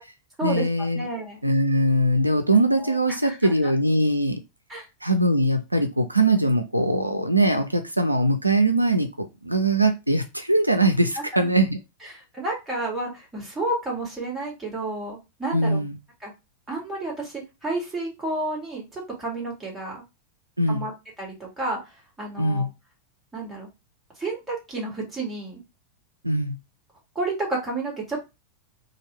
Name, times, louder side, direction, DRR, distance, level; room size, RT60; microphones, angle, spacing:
voice 1, 0.4-1.0 1.4-4.4 5.0-11.8 15.5-16.0 20.6-20.9 22.4-22.7 26.2-26.6, right 1 dB, 85° right, 0.4 m, -21 dB
voice 2, 0.9-1.4 2.8-3.7 4.7-4.8 11.2-11.3 12.0-15.8 16.2-16.3 16.7-20.0 20.7-20.9 21.2-21.8 22.2-22.7 23.3-23.7 24.2-25.6 27.1-28.2, right 2 dB, 10° right, 1.8 m, -31 dB
3.1 x 2.4 x 3.0 m
figure-of-eight pair, 90°, 0 cm